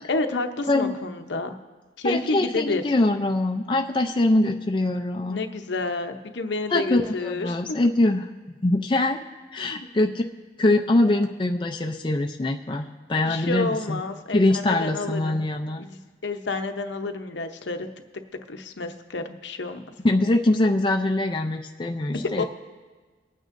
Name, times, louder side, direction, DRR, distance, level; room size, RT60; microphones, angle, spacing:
voice 1, 0.1-1.5 2.0-2.8 5.3-7.8 9.6-9.9 13.3-15.4 15.8-17.9 18.5-19.8 22.4-22.5, left 3 dB, 70° left, 7 dB, 0.8 m, -29 dB
voice 2, 2.0-5.4 6.7-9.2 9.5-10.2 10.6-14.0 14.3-15.8 20.0-22.4, left 2 dB, 25° left, 3 dB, 0.4 m, -23 dB
23.5 x 9.1 x 2.6 m, 1.4 s
head